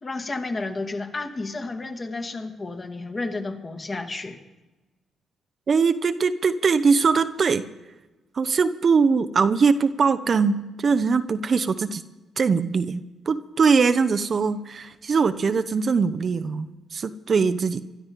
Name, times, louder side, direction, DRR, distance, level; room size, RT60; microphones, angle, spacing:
voice 1, 0.0-4.4, left 3 dB, 40° left, 3 dB, 2.1 m, -31 dB
voice 2, 5.7-7.6 8.4-12.0 12.4-17.8, right 5 dB, 45° right, 10 dB, 0.8 m, -21 dB
25.0 x 12.5 x 3.7 m, 1.1 s
hypercardioid pair, 40°, 0 cm